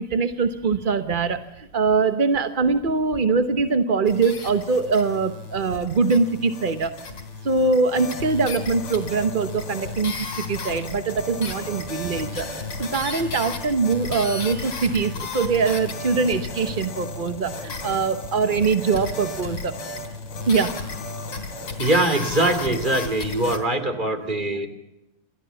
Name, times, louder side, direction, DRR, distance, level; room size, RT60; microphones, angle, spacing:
voice 1, 0.0-6.9 7.4-12.5 12.8-19.8 20.5-20.9, right 4 dB, 45° right, 9 dB, 0.6 m, -23 dB
sound 1, 4.1-23.6, left 3 dB, 75° left, 4.1 m, -34 dB
voice 2, 21.8-24.7, right 1 dB, 20° right, 8 dB, 2.9 m, -22 dB
28.5 x 13.5 x 7.0 m, 0.90 s
omnidirectional pair, 2.4 m